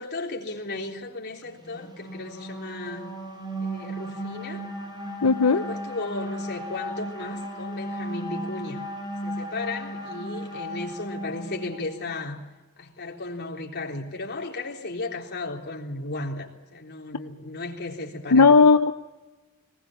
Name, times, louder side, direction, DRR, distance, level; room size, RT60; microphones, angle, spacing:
voice 1, 0.0-3.1 3.6-4.6 5.4-8.8 9.2-12.4 12.8-18.6, left 2 dB, 50° left, 0 dB, 3.7 m, -35 dB
sound 1, 1.6-12.1, equal, 20° right, 4.2 m, -35 dB
voice 2, 5.2-5.6 18.3-18.9, left 4 dB, 90° left, 8 dB, 0.8 m, -16 dB
20.0 x 19.5 x 7.4 m, 1.1 s
head